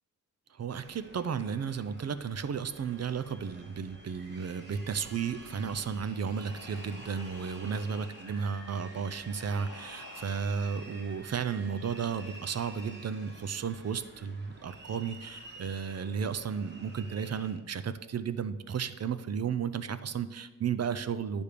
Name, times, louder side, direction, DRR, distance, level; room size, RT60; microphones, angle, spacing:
voice 1, 0.5-21.4, right 6 dB, 50° right, 13 dB, 0.5 m, -34 dB
sound 1, 0.7-17.5, right 2 dB, 35° right, 1.8 m, -50 dB
Cheering, 4.4-10.4, left 6 dB, 70° left, 0.8 m, -54 dB
10.0 x 3.5 x 6.6 m, 1.1 s
wide cardioid pair, 85°, 32 cm